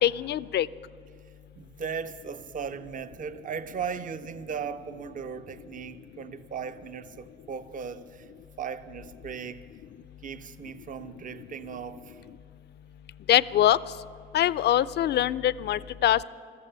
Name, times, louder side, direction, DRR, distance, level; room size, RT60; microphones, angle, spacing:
voice 1, 0.0-0.7 13.3-13.8 14.3-16.2, left 12 dB, 60° left, 0.4 m, -23 dB
voice 2, 1.6-8.3 8.6-9.6 10.2-12.2, right 6 dB, 40° right, 0.6 m, -37 dB
14.0 x 13.5 x 6.8 m
cardioid pair, 90°, 20 cm